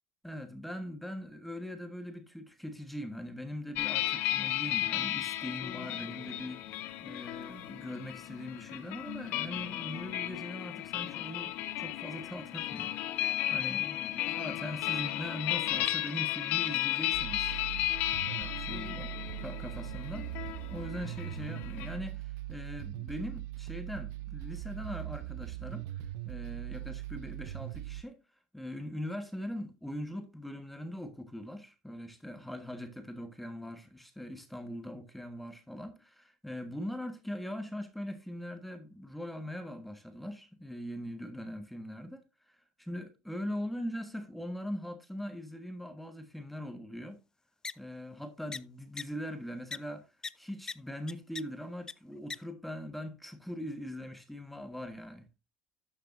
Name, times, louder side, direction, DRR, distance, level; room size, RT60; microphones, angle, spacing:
voice 1, 0.2-6.6 7.0-12.9 13.5-17.5 18.2-19.1 19.4-28.2 28.5-47.2 47.8-50.0 50.4-55.3, equal, 5° left, 1.5 m, -41 dB
sound 1, 3.8-22.0, left 14 dB, 65° left, 1.0 m, -34 dB
sound 2, 17.1-28.0, right 16 dB, 80° right, 0.5 m, -40 dB
sound 3, 47.6-47.7 48.5-48.6 49.0-49.1 49.7-49.8 50.2-50.3 50.7-50.8 51.1-51.4 51.9-52.0 52.3-52.4, left 4 dB, 20° left, 0.4 m, -37 dB
12.0 x 6.5 x 2.6 m
hypercardioid pair, 85°, 3 cm